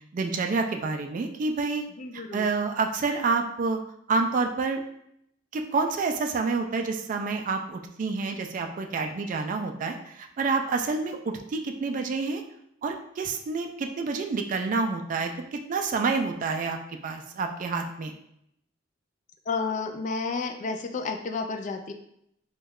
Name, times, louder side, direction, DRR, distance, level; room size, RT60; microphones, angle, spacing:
voice 1, 0.1-1.8 2.1-3.8 4.1-4.8 5.5-12.4 12.8-16.8 17.0-18.1, right 4 dB, 45° right, 5 dB, 0.3 m, -28 dB
voice 2, 2.0-2.5 19.5-21.9, left 4 dB, 40° left, 5 dB, 0.3 m, -31 dB
3.0 x 2.3 x 3.5 m, 0.74 s
head